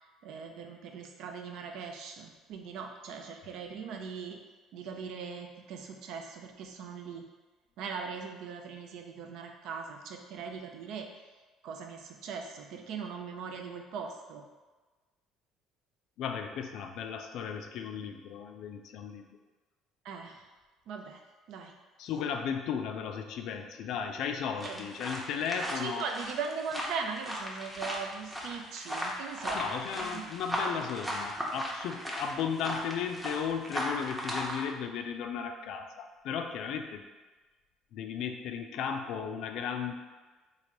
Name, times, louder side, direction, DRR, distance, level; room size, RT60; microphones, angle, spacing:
voice 1, 0.2-4.4 4.7-7.2 7.8-11.1 11.6-14.4 20.0-20.4 20.9-21.2 21.5-21.7 24.6-24.8 25.6-29.6 30.0-30.3, right 5 dB, 70° right, 3 dB, 0.4 m, -40 dB
voice 2, 16.2-19.3 22.0-26.0 29.5-37.1 37.9-39.9, left 7 dB, 70° left, 6 dB, 0.3 m, -35 dB
sound 1, 24.6-34.6, equal, 10° right, 0.7 m, -37 dB
3.1 x 2.5 x 2.9 m, 1.3 s
supercardioid pair, 75°, 0 cm